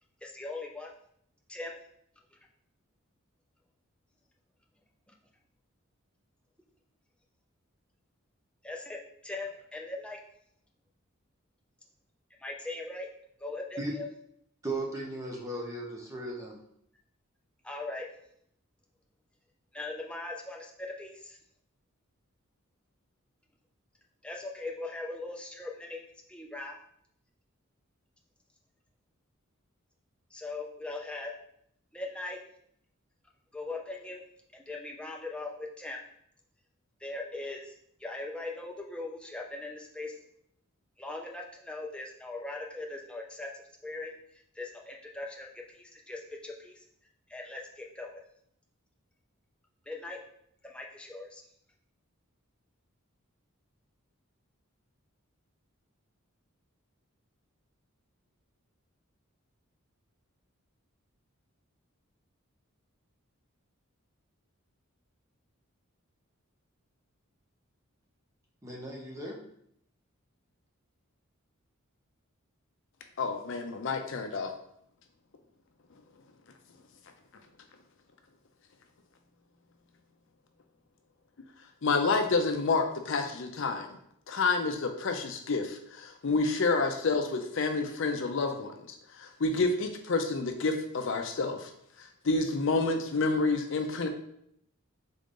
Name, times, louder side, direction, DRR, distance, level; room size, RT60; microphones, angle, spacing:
voice 1, 0.2-0.9 1.5-1.8 8.6-10.2 12.4-13.1 13.4-14.1 17.6-18.1 19.7-21.4 24.2-26.0 26.3-26.7 30.3-31.3 31.9-32.4 33.5-34.2 34.5-36.0 37.0-37.7 38.0-40.2 41.0-44.1 44.5-46.8 47.3-48.2 49.9-50.2 50.6-51.4, left 2 dB, 5° left, -1 dB, 0.5 m, -40 dB
voice 2, 14.6-16.6 68.6-69.4, right 2 dB, 15° right, -2 dB, 0.9 m, -36 dB
voice 3, 73.2-74.5 81.8-83.9 84.3-91.7 92.0-94.1, left 3 dB, 60° left, 5 dB, 0.5 m, -29 dB
3.8 x 3.8 x 3.7 m, 0.71 s
head